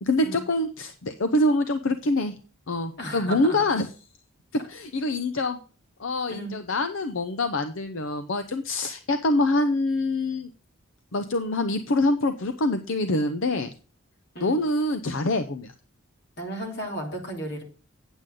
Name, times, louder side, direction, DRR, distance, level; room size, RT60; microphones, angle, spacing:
voice 1, 0.0-2.3 2.7-3.9 4.7-5.6 6.0-10.5 11.1-13.7 14.4-15.7, left 2 dB, 75° left, 9 dB, 0.7 m, -25 dB
voice 2, 3.0-3.6 6.3-6.5 14.3-14.6 16.4-17.6, right 1 dB, 55° left, 1 dB, 3.1 m, -34 dB
9.1 x 8.1 x 3.8 m, 0.39 s
head